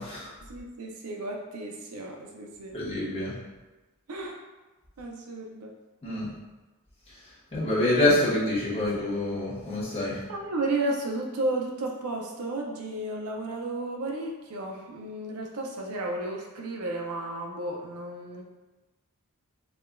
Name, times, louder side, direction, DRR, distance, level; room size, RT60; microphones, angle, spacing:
voice 1, 0.4-2.8 4.1-4.4 5.0-5.7 10.3-18.4, right 2 dB, 80° right, 0 dB, 0.5 m, -33 dB
voice 2, 2.7-3.4 6.0-6.3 7.5-10.2, left 1 dB, 25° left, -9 dB, 1.1 m, -26 dB
4.8 x 2.5 x 2.2 m, 1.2 s
head